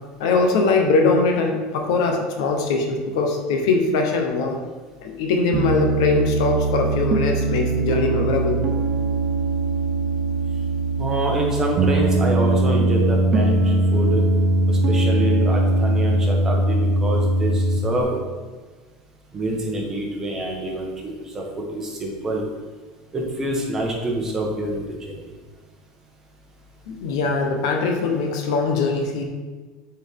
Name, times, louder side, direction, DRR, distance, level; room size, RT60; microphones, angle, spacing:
voice 1, 0.2-4.6 5.0-8.6 26.9-29.2, left 3 dB, 85° left, 3 dB, 1.1 m, -21 dB
Piano, 5.5-18.0, right 2 dB, 40° right, 0.7 m, -21 dB
voice 2, 11.0-14.2 14.7-18.2 19.3-22.4 23.1-25.2, right 1 dB, 20° right, -1 dB, 1.3 m, -26 dB
7.8 x 4.5 x 3.7 m, 1.3 s
supercardioid pair, 140°, 3 cm